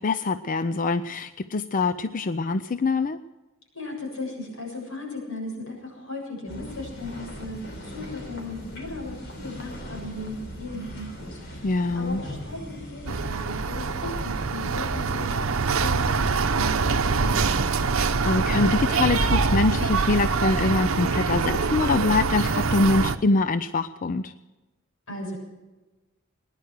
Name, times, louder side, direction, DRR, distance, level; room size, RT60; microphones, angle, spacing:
voice 1, 0.0-3.2 11.6-12.2 18.0-24.3, left 3 dB, 40° left, 12 dB, 0.5 m, -24 dB
voice 2, 3.7-17.6 25.1-25.4, left 2 dB, 85° left, -2 dB, 7.4 m, -37 dB
sound 1, 6.5-16.5, equal, 60° left, 3.7 m, -40 dB
sound 2, 13.1-23.2, right 4 dB, 80° right, 0.8 m, -24 dB
20.0 x 10.5 x 6.6 m, 1.1 s
head